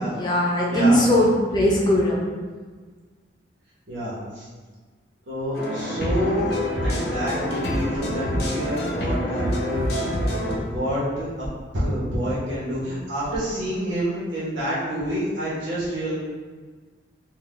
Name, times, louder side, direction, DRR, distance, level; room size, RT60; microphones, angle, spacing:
voice 1, 0.0-2.3, equal, 25° left, -5 dB, 0.8 m, -20 dB
voice 2, 0.7-1.0 3.9-4.5 5.3-6.5 6.8-11.5 11.7-16.1, equal, 90° right, -9 dB, 1.1 m, -28 dB
sound 1, 5.5-10.6, equal, 60° left, 0.7 m, -26 dB
4.0 x 2.5 x 3.6 m, 1.4 s
head